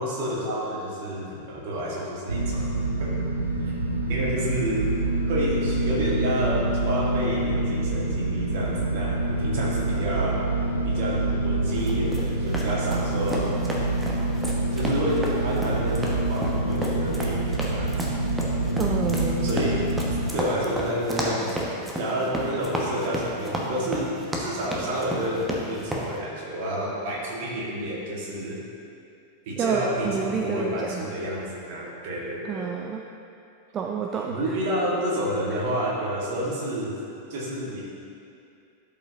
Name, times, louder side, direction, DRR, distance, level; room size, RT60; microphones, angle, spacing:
voice 1, 0.0-2.6 3.0-3.3 3.6-3.8 4.1-4.9 5.2-10.5 10.8-13.5 14.7-18.2 19.4-19.9 20.3-21.6 22.0-28.6 29.5-32.7 34.3-37.0 37.3-37.8, equal, 50° right, -4 dB, 1.8 m, -29 dB
sound 1, 2.3-20.3, right 2 dB, 80° right, 0.6 m, -26 dB
sound 2, 11.8-26.1, equal, 10° right, 1.1 m, -32 dB
voice 2, 18.8-19.5 29.6-31.1 32.4-33.0 33.7-34.6 35.5-35.6, right 6 dB, 30° right, 1 dB, 0.4 m, -29 dB
12.0 x 5.4 x 2.8 m, 2.5 s
figure-of-eight pair, 90°, 0 cm